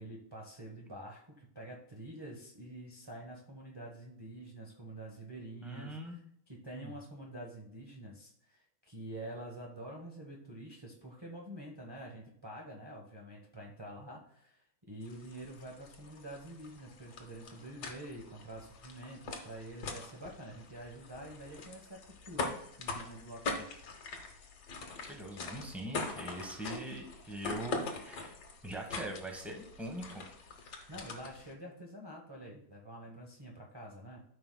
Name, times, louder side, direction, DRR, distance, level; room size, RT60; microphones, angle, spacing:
voice 1, 0.0-6.2 6.5-23.6 30.9-34.2, right 1 dB, 30° right, -2 dB, 0.4 m, -47 dB
voice 2, 5.6-6.1 6.7-6.9 25.1-28.4 28.6-30.2, right 1 dB, ahead, 1 dB, 0.8 m, -42 dB
sound 1, 15.0-31.5, left 3 dB, 55° left, 1.6 m, -43 dB
13.0 x 5.8 x 2.2 m, 0.71 s
omnidirectional pair, 2.2 m